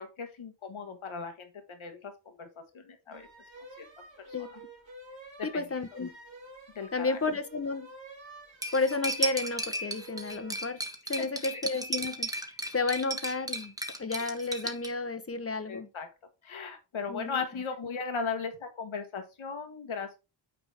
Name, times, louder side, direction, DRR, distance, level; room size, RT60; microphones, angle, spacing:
voice 1, 0.0-2.5 2.7-3.3 4.2-4.5 5.4-5.8 6.7-7.2 10.3-10.4 11.2-11.3 15.7-16.1 16.4-20.2, left 5 dB, 85° left, 1.6 m, -37 dB
sound 1, 3.1-10.6, right 2 dB, 70° right, 3.1 m, -50 dB
voice 2, 5.4-6.2 6.9-7.9 8.7-10.8 11.1-12.3 12.7-13.7 14.0-15.9 17.1-17.6, left 3 dB, 30° left, 1.0 m, -32 dB
Cutlery silverware, 8.6-14.9, right 2 dB, 5° right, 1.3 m, -35 dB
9.2 x 5.0 x 3.5 m
wide cardioid pair, 95°, 47 cm